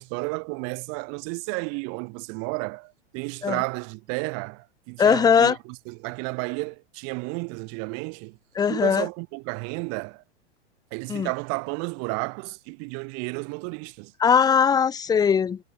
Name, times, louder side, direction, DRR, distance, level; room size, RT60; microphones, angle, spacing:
voice 1, 0.0-8.4 8.7-10.2 10.9-14.1, right 35 dB, 45° right, 3.2 m, -32 dB
voice 2, 5.0-5.6 8.6-9.1 11.1-11.3 14.2-15.6, left 7 dB, 10° left, 0.6 m, -20 dB
hypercardioid pair, 125°, 35 cm